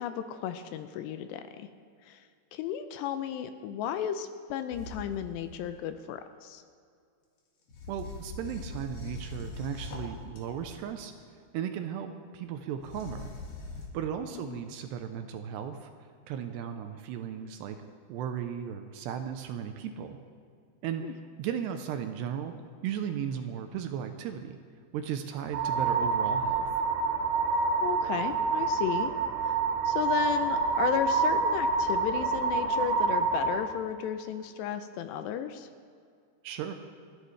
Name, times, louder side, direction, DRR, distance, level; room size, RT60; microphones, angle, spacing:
voice 1, 0.0-1.7 2.1-2.2 2.5-6.6 14.3-14.6 21.0-21.1 27.8-29.1 29.4-29.6 29.9-35.7, left 9 dB, 80° left, 9 dB, 2.7 m, -34 dB
sound 1, 4.7-5.7 7.7-10.8 12.8-13.9, left 3 dB, 50° left, 3.0 m, -42 dB
voice 2, 7.9-11.1 11.5-13.3 13.9-15.9 16.3-17.8 18.1-20.2 20.8-22.5 22.8-24.5 24.9-26.7 36.4-36.7, right 8 dB, 80° right, 7 dB, 2.7 m, -36 dB
sound 2, 25.5-33.6, right 4 dB, 60° right, 3.8 m, -27 dB
29.5 x 10.5 x 3.3 m, 2.3 s
omnidirectional pair, 5.2 m